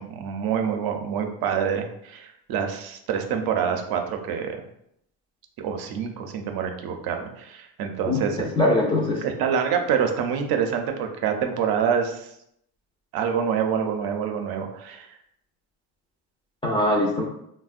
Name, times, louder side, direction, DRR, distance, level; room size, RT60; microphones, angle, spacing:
voice 1, 0.0-4.6 5.6-8.5 9.2-12.3 13.1-15.1, right 7 dB, 65° right, 5 dB, 0.6 m, -26 dB
voice 2, 8.1-9.2 16.6-17.2, left 1 dB, 15° left, -2 dB, 0.4 m, -22 dB
3.4 x 2.1 x 2.4 m, 0.75 s
cardioid pair, 100°, 39 cm